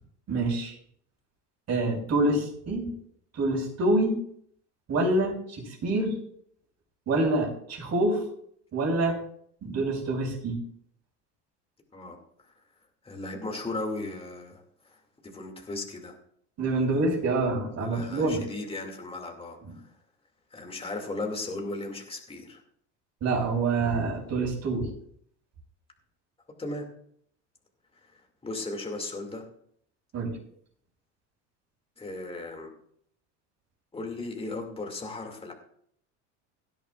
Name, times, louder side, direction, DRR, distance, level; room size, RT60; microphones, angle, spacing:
voice 1, 0.3-0.7 1.7-2.9 3.3-4.2 4.9-6.2 7.1-8.2 8.7-9.2 9.6-10.6 16.6-18.4 23.2-24.9 30.1-30.4, right 2 dB, 45° right, 0 dB, 5.7 m, -26 dB
voice 2, 13.0-16.1 17.8-19.9 20.5-22.6 26.6-26.9 28.0-29.4 32.0-32.7 33.9-35.5, left 2 dB, 15° left, 2 dB, 2.5 m, -36 dB
17.0 x 11.0 x 2.5 m, 0.65 s
supercardioid pair, 100°, 36 cm